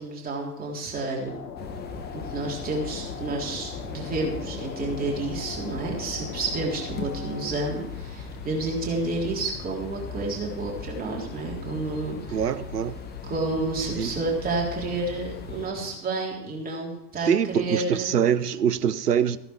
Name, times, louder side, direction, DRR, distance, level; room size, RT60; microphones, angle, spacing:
voice 1, 0.0-1.3 2.1-12.4 13.2-18.1, right 3 dB, 20° right, 3.6 m, -30 dB
sound 1, 1.2-7.5, left 6 dB, 75° left, 1.3 m, -39 dB
sound 2, 1.6-15.7, left 5 dB, 20° left, 1.4 m, -39 dB
voice 2, 12.3-13.0 14.0-14.1 17.3-19.4, right 8 dB, 75° right, 0.8 m, -24 dB
15.0 x 11.0 x 4.7 m
figure-of-eight pair, 95°, 47 cm